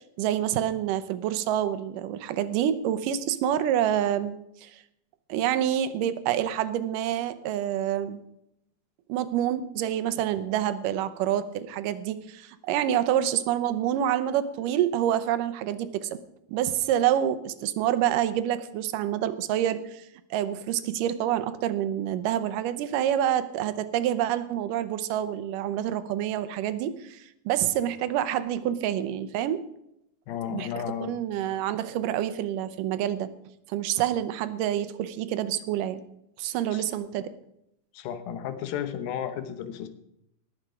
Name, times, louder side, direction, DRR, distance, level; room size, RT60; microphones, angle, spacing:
voice 1, 0.0-4.8 5.3-8.2 9.1-16.2 16.5-29.6 30.5-33.3 33.7-36.0 36.4-37.3, right 11 dB, 75° right, 13 dB, 2.2 m, -27 dB
voice 2, 30.3-31.1 36.7-36.8 37.9-39.9, left 9 dB, 85° left, 10 dB, 2.8 m, -33 dB
18.5 x 7.3 x 5.0 m, 0.79 s
omnidirectional pair, 4.1 m